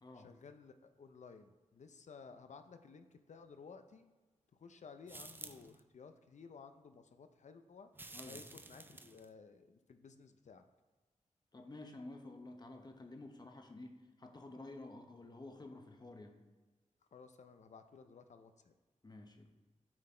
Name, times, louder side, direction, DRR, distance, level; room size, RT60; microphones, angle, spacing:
voice 1, 0.1-4.0 4.5-7.9 8.3-10.6 17.1-18.7, left 5 dB, 65° left, 8 dB, 0.5 m, -56 dB
sound 1, 5.1-5.8 7.9-9.3, right 2 dB, 15° right, 0.4 m, -51 dB
voice 2, 11.5-16.4 19.0-19.5, left 2 dB, 30° left, 5 dB, 0.8 m, -51 dB
8.7 x 4.0 x 4.3 m, 1.3 s
wide cardioid pair, 100°, 13 cm